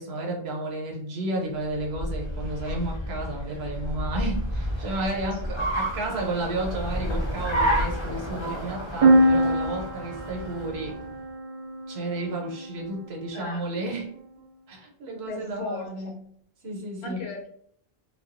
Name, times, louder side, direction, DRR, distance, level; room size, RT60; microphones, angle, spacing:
voice 1, 0.0-11.0 11.9-14.2 14.7-16.3 16.6-17.2, right 2 dB, 85° right, -1 dB, 1.0 m, -32 dB
Car, 1.7-11.2, equal, 35° left, 0.6 m, -31 dB
sound 1, 9.0-12.8, right 1 dB, 50° right, 0.4 m, -24 dB
voice 2, 13.3-13.6 15.3-16.2 17.0-17.5, left 3 dB, 80° left, 1 dB, 0.9 m, -36 dB
2.3 x 2.2 x 2.5 m, 0.65 s
omnidirectional pair, 1.0 m